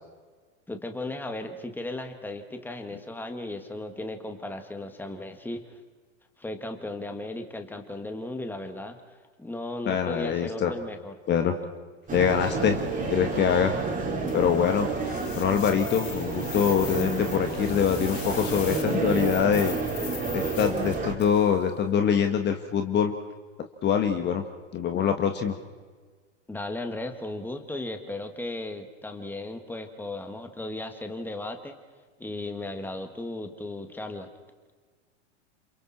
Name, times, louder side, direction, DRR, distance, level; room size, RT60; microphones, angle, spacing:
voice 1, 0.7-5.8 6.4-9.0 9.4-11.1 26.5-31.8 32.2-34.3, left 2 dB, 5° left, 6 dB, 2.0 m, -36 dB
voice 2, 9.9-10.7 11.3-11.6 12.1-12.8 13.1-13.7 14.3-14.9 15.4-19.7 20.3-23.1 23.8-24.4 24.7-25.6, left 7 dB, 30° left, 6 dB, 1.7 m, -24 dB
sound 1, 12.1-21.1, right 4 dB, 20° right, 4.4 m, -30 dB
sound 2, 14.3-21.5, left 8 dB, 90° left, 2.7 m, -41 dB
30.0 x 27.5 x 4.4 m, 1.5 s
hypercardioid pair, 115°, 37 cm